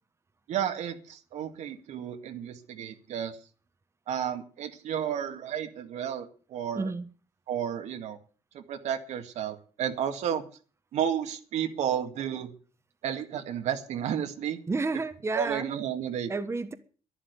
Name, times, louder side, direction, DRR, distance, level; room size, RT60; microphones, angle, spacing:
voice 1, 0.5-3.4 4.1-6.9 7.5-8.2 8.5-10.4 10.9-12.5 13.0-14.6 15.3-16.3, right 9 dB, 75° right, 2.0 m, -32 dB
voice 2, 6.7-7.1 14.7-15.7 16.3-16.7, right 3 dB, 20° right, 1.2 m, -30 dB
11.5 x 11.0 x 8.2 m
cardioid pair, 110°, 12 cm